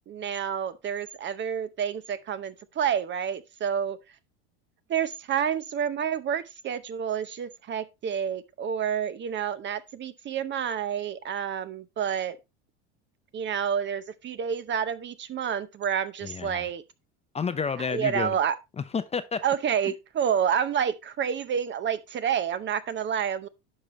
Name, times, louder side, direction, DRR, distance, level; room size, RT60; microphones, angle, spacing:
voice 1, 0.1-4.0 4.9-12.4 13.3-16.8 17.8-18.5 19.4-23.5, right 8 dB, 30° right, 0.7 m, -29 dB
voice 2, 16.2-16.6 17.3-18.3 18.8-19.4, left 5 dB, 20° left, 0.7 m, -30 dB
10.5 x 5.5 x 3.1 m
hypercardioid pair, 95°, 35 cm